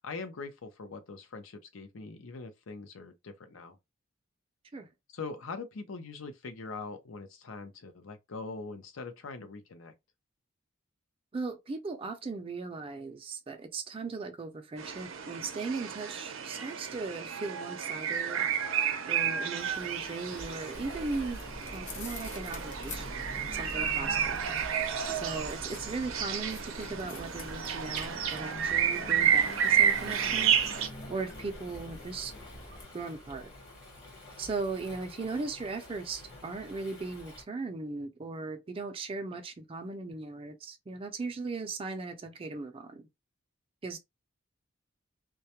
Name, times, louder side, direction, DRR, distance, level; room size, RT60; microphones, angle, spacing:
voice 1, 0.0-3.8 5.1-9.9, left 4 dB, 80° left, 0.6 m, -42 dB
voice 2, 11.3-21.4 21.7-24.4 25.1-32.3 32.9-33.5 34.4-43.1 43.8-44.0, right 3 dB, 30° right, 0.4 m, -38 dB
sound 1, 14.8-30.9, right 8 dB, 85° right, 0.5 m, -31 dB
Waves surf, 19.6-37.4, left 2 dB, 60° left, 1.1 m, -50 dB
sound 2, 20.7-32.8, left 1 dB, 40° left, 0.8 m, -44 dB
2.3 x 2.1 x 2.8 m
head